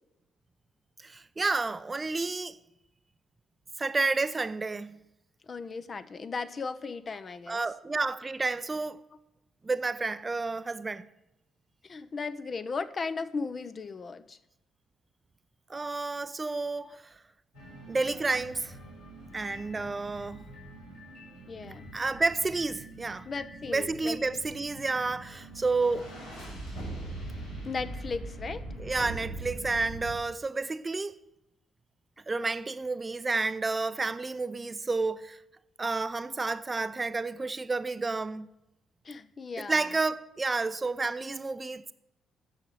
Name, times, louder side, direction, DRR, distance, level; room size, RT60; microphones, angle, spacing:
voice 1, 1.0-2.6 3.8-5.0 7.5-9.0 9.6-11.0 15.7-17.1 17.9-18.7 19.3-20.5 21.9-23.3 23.7-26.1 28.8-31.1 32.3-35.4 35.8-38.5 39.6-41.9, right 3 dB, 25° right, 0.6 m, -30 dB
voice 2, 5.4-7.6 11.8-14.4 16.8-17.0 21.5-21.9 23.3-24.2 27.6-28.6 39.0-39.8, left 4 dB, 40° left, 0.7 m, -36 dB
sound 1, 17.5-30.2, right 2 dB, 85° left, 4.1 m, -43 dB
8.9 x 6.8 x 8.0 m
figure-of-eight pair, 45°, 0 cm